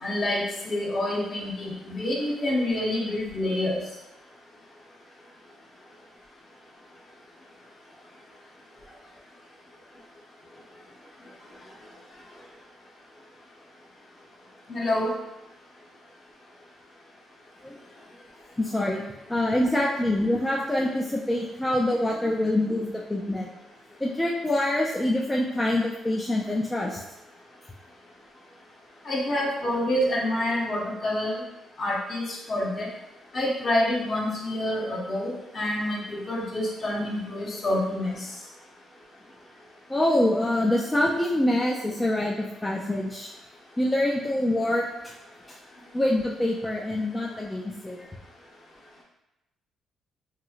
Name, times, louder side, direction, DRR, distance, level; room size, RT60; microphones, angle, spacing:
voice 1, 0.0-3.8 14.7-15.1 29.0-31.4 31.8-32.9 33.3-38.1, left 1 dB, 45° left, -3 dB, 0.8 m, -27 dB
voice 2, 18.6-19.0 19.3-23.5 24.0-27.0 39.9-43.3 43.8-45.1 45.5-45.6 45.9-48.0, left 1 dB, 15° left, -3 dB, 0.3 m, -25 dB
3.0 x 2.7 x 2.4 m, 0.94 s
cardioid pair, 90°, 0 cm